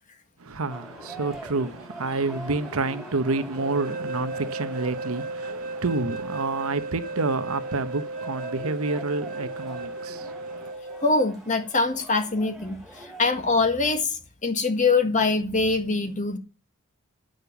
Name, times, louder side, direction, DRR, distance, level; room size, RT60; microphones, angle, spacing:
voice 1, 0.4-10.7, right 3 dB, 75° right, 1.0 m, -29 dB
sound 1, 0.7-13.6, right 1 dB, ahead, 2.6 m, -44 dB
sound 2, 3.5-11.2, right 2 dB, 40° right, 0.9 m, -35 dB
voice 2, 11.0-16.4, left 3 dB, 35° left, 1.7 m, -24 dB
8.9 x 6.6 x 6.8 m
head